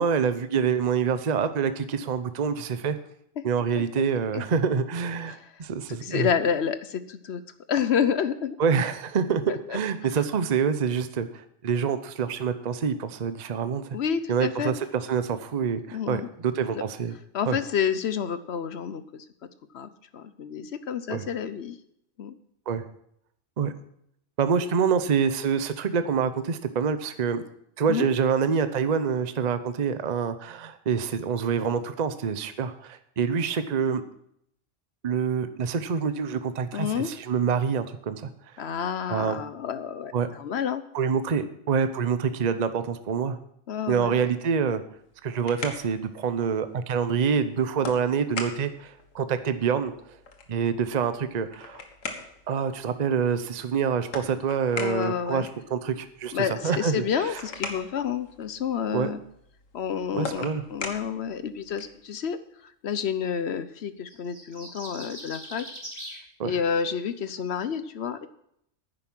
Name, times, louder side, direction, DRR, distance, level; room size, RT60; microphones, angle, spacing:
voice 1, 0.0-3.0 3.4-6.3 8.6-9.4 9.7-13.8 14.3-17.1 17.5-17.6 21.1-21.2 22.7-22.8 23.6-23.7 24.4-27.4 27.8-34.0 35.0-38.3 39.1-39.4 40.1-40.3 40.9-43.4 43.9-44.8 45.2-50.2 50.5-51.8 52.5-56.3 56.6-57.4 58.9-59.1 60.1-60.6 66.4-66.6, right 6 dB, 40° right, 11 dB, 0.7 m, -26 dB
voice 2, 6.0-7.4 7.7-8.6 9.5-9.8 13.9-14.7 15.9-16.3 17.3-19.2 19.7-21.8 22.2-22.3 27.9-28.1 36.7-37.1 38.6-40.8 43.7-44.2 54.7-55.5 56.3-59.2 59.7-62.4 62.8-65.6 66.4-68.3, left 7 dB, 60° left, 13 dB, 0.9 m, -29 dB
sound 1, 45.0-62.0, left 4 dB, 90° left, 1.8 m, -42 dB
sound 2, 64.1-66.2, right 1 dB, 25° right, 3.2 m, -41 dB
10.0 x 9.6 x 6.1 m, 0.72 s
omnidirectional pair, 1.3 m